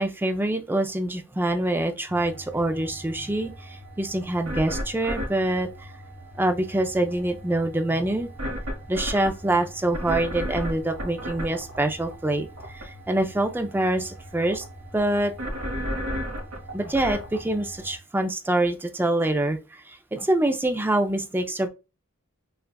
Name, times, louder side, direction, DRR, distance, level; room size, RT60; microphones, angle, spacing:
voice 1, 0.0-5.7 6.4-8.3 8.9-12.5 12.7-14.6 14.9-15.3 16.7-21.7, right 1 dB, 10° right, 0.4 m, -25 dB
sound 1, 2.1-18.0, equal, 80° right, 1.4 m, -36 dB
6.6 x 2.3 x 2.2 m
head